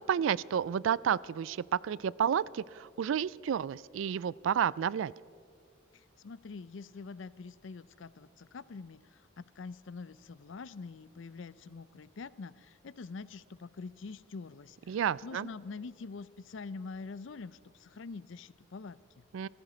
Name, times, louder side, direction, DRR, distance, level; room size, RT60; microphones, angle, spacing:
voice 1, 0.0-5.1 14.9-15.5 19.3-19.5, right 8 dB, 75° right, 22 dB, 0.3 m, -31 dB
voice 2, 5.9-19.2, left 4 dB, 70° left, 18 dB, 0.5 m, -45 dB
17.0 x 14.5 x 5.0 m, 2.4 s
head